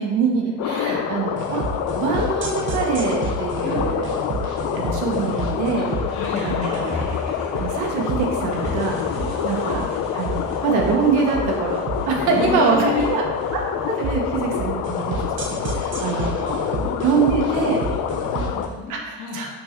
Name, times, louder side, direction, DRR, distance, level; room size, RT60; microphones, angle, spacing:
voice 1, 0.0-1.6 1.9-4.1 4.7-6.9 7.5-9.0 9.4-9.8 10.1-13.2 13.5-16.3 17.0-17.8 18.9-19.5, right 5 dB, 75° right, 0 dB, 1.4 m, -24 dB
sound 1, 0.6-18.7, left 9 dB, 85° left, 0.6 m, -27 dB
voice 2, 0.6-1.0 3.6-3.9 5.7-5.8 6.1-6.7 9.2-9.8 12.2-13.1 16.0-16.1 16.4-19.4, left 4 dB, 70° left, -8 dB, 2.0 m, -31 dB
sound 2, 0.9-18.9, left 1 dB, 25° right, 2.4 m, -40 dB
sound 3, 1.4-18.6, right 3 dB, 40° right, 1.1 m, -31 dB
5.9 x 4.5 x 5.8 m, 1.2 s
cardioid pair, 175°, 31 cm